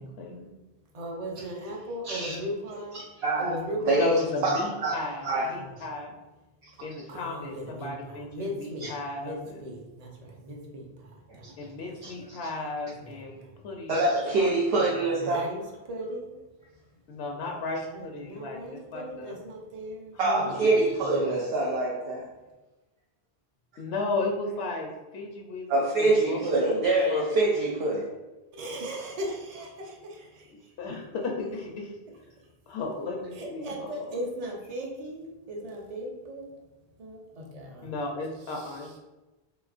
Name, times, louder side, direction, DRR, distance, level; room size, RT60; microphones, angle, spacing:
voice 1, 0.0-0.5 3.9-6.1 6.8-9.6 11.6-13.9 14.4-15.0 17.1-18.6 18.9-19.4 20.2-20.7 21.0-21.4 23.8-25.7 26.0-26.8 27.1-27.2 30.8-31.9 32.7-34.2 37.8-39.0, left 3 dB, 85° left, 1 dB, 0.8 m, -35 dB
voice 2, 0.9-3.0 3.4-4.2 5.5-5.7 7.1-8.9 9.2-11.7 12.9-13.6 15.1-16.4 17.8-20.5 28.5-30.8 33.3-36.5 37.0-38.0 38.4-39.0, equal, 45° right, 0 dB, 0.7 m, -38 dB
voice 3, 2.1-2.4 3.2-3.5 3.9-5.0 5.2-5.5 11.4-11.5 12.0-12.4 13.9-15.4 20.2-22.3 25.7-28.1, right 2 dB, 75° right, -3 dB, 0.8 m, -25 dB
3.1 x 3.0 x 2.4 m, 1.1 s
omnidirectional pair, 1.0 m